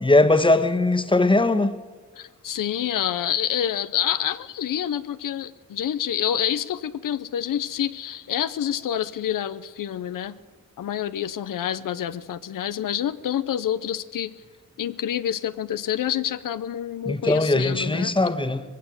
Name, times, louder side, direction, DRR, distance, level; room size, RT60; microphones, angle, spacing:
voice 1, 0.0-1.7 17.0-18.6, left 2 dB, 15° left, 1.5 m, -20 dB
voice 2, 2.2-10.4 10.8-14.3 14.8-18.2, left 10 dB, 90° left, 0.8 m, -27 dB
20.0 x 16.0 x 8.0 m
cardioid pair, 70°, 32 cm